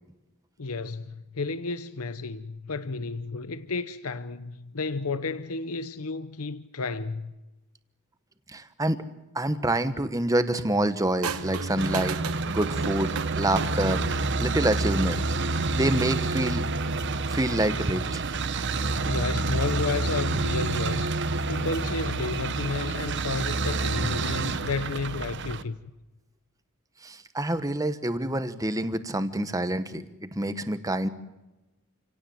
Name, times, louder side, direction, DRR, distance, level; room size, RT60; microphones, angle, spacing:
voice 1, 0.6-7.3 19.0-21.1 21.5-25.8, left 3 dB, 80° left, 0.9 m, -32 dB
voice 2, 8.5-9.0 9.3-12.2 12.5-15.3 15.7-16.7 17.3-18.2 18.6-18.7 27.0-31.1, right 1 dB, 15° right, 1.2 m, -27 dB
sound 1, 11.2-13.9 14.9-15.3, right 6 dB, 80° right, 1.3 m, -36 dB
sound 2, 11.3-25.6, right 3 dB, 55° right, 1.1 m, -28 dB
27.5 x 17.5 x 7.9 m
head